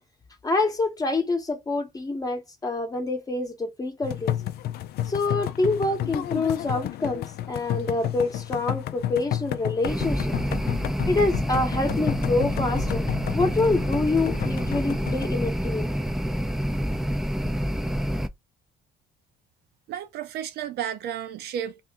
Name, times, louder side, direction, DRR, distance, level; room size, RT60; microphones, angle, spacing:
voice 1, 0.4-4.3 5.1-10.3 11.1-13.1 13.3-15.9, left 3 dB, 20° left, 0.9 m, -26 dB
sound 1, 4.0-15.3, left 12 dB, 70° left, 0.5 m, -31 dB
sound 2, 9.9-18.3, equal, ahead, 0.5 m, -27 dB
voice 2, 19.9-21.8, right 9 dB, 75° right, 0.7 m, -32 dB
2.7 x 2.7 x 3.5 m
cardioid pair, 110°, 17 cm